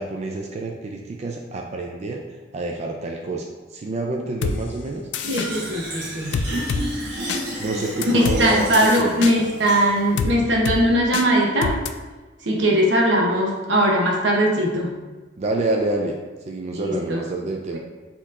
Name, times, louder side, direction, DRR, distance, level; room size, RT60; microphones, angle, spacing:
voice 1, 0.0-2.2 2.5-5.0 7.6-9.2 15.4-16.2 16.5-17.8, right 2 dB, 40° right, 1 dB, 0.3 m, -28 dB
sound 1, 4.4-4.6 5.1-5.5 6.3-6.8 7.3-7.4 8.0-8.4 8.7-9.3 10.2-10.3 10.7-10.8 11.1-11.3 11.6-11.9, left 5 dB, 70° left, 0.3 m, -25 dB
Fill (with liquid), 5.2-10.2, equal, 65° right, 1.2 m, -31 dB
voice 2, 5.2-6.5 8.1-11.8 12.4-15.0 16.7-17.2 17.7-17.8, equal, 85° right, -1 dB, 0.9 m, -20 dB
4.3 x 2.9 x 3.6 m, 1.3 s
head